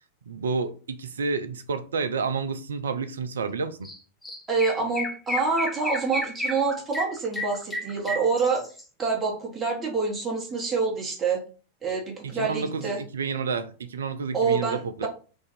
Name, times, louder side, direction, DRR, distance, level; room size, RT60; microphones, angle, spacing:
voice 1, 0.3-3.9 12.2-15.1, right 5 dB, 70° right, 0.3 m, -30 dB
Chirp tweet, 3.8-4.0 4.2-8.8, left 1 dB, 5° left, 0.6 m, -32 dB
voice 2, 4.5-8.6 9.0-11.4 11.8-13.0 14.3-15.1, right 4 dB, 20° right, 1.0 m, -26 dB
2.6 x 2.4 x 4.0 m
figure-of-eight pair, 90°, 0 cm